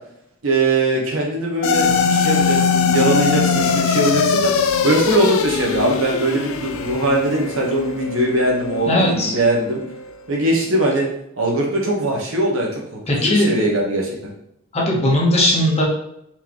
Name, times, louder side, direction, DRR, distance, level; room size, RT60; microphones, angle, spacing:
voice 1, 0.4-9.8 10.3-11.1 11.4-14.1, right 1 dB, 70° right, -1 dB, 1.2 m, -21 dB
sound 1, 1.6-10.1, left 5 dB, 70° left, 0.4 m, -21 dB
voice 2, 8.9-9.3 13.1-13.5 14.7-15.8, left 1 dB, 30° left, -2 dB, 1.1 m, -17 dB
4.4 x 3.8 x 3.0 m, 0.78 s
head